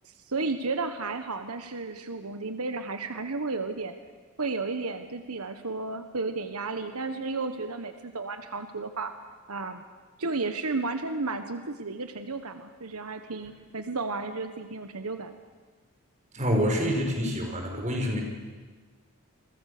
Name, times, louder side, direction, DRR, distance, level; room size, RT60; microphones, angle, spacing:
voice 1, 0.0-3.9 4.4-9.1 9.5-9.8 10.2-15.3, right 3 dB, 90° right, 8 dB, 1.4 m, -33 dB
voice 2, 16.3-18.2, equal, 35° right, 2 dB, 5.3 m, -27 dB
29.0 x 22.5 x 6.9 m, 1.4 s
head